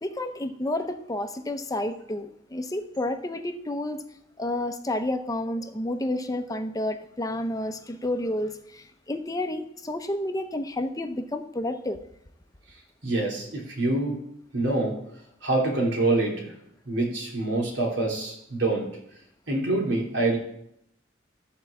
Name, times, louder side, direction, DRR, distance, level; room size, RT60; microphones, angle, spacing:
voice 1, 0.0-4.0 4.4-12.0, left 1 dB, 20° left, 8 dB, 0.7 m, -30 dB
voice 2, 13.0-14.2 14.5-14.9 15.4-16.5 16.9-18.9 19.5-20.4, right 2 dB, 85° right, -2 dB, 3.1 m, -25 dB
13.0 x 4.7 x 7.1 m, 0.77 s
head